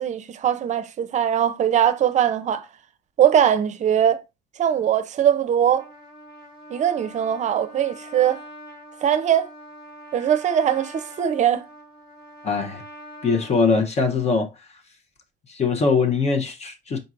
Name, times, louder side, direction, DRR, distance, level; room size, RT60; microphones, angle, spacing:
voice 1, 0.0-2.7 3.2-4.2 4.6-5.9 6.7-8.4 9.0-9.5 10.1-11.7, right 9 dB, 45° right, 0.5 m, -21 dB
Trumpet, 5.5-13.6, equal, 60° left, 2.3 m, -44 dB
voice 2, 12.4-12.8 13.2-14.5 15.5-17.0, left 4 dB, 40° left, 0.8 m, -22 dB
4.4 x 3.9 x 2.4 m
cardioid pair, 110°, 17 cm